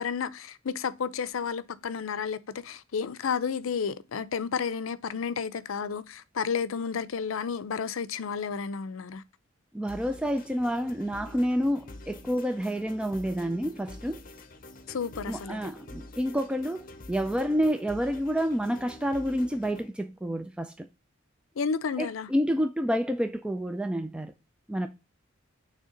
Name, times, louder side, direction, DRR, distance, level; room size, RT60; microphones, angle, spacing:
voice 1, 0.0-9.2 14.9-15.6 21.6-22.3, left 6 dB, 80° left, 0.5 m, -31 dB
voice 2, 9.7-14.2 15.3-20.9 22.0-24.3 24.7-24.9, equal, 5° right, 0.3 m, -29 dB
sound 1, 9.9-19.9, left 2 dB, 45° left, 0.7 m, -47 dB
6.5 x 3.3 x 5.0 m
head